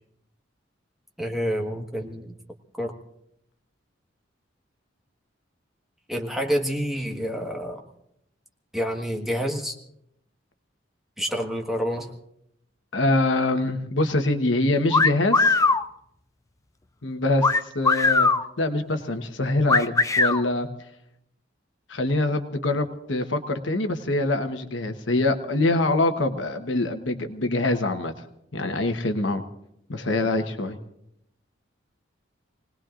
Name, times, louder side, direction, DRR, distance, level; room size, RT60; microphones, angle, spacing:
voice 1, 1.2-2.3 2.8-2.9 6.1-7.8 8.7-9.8 11.2-12.1, equal, ahead, 1 dB, 1.5 m, -28 dB
voice 2, 12.9-15.5 17.0-18.3 18.6-20.7 21.9-28.1 28.5-29.4 29.9-30.8, left 2 dB, 70° left, 6 dB, 1.2 m, -24 dB
sound 1, 14.9-15.8 17.4-18.4 19.7-20.4, left 3 dB, 15° left, 0.5 m, -19 dB
28.0 x 19.0 x 2.5 m, 0.78 s
head